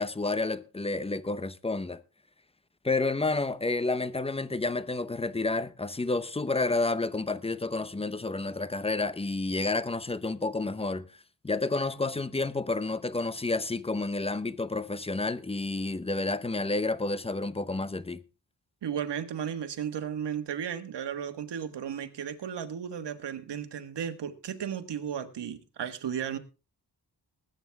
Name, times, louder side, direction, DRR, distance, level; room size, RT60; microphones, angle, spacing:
voice 1, 0.0-2.0 2.8-11.1 11.4-18.2, left 3 dB, 15° left, 0.7 m, -30 dB
voice 2, 18.8-26.4, right 8 dB, 80° right, 1.6 m, -34 dB
20.0 x 9.2 x 3.5 m
wide cardioid pair, 125°, 41 cm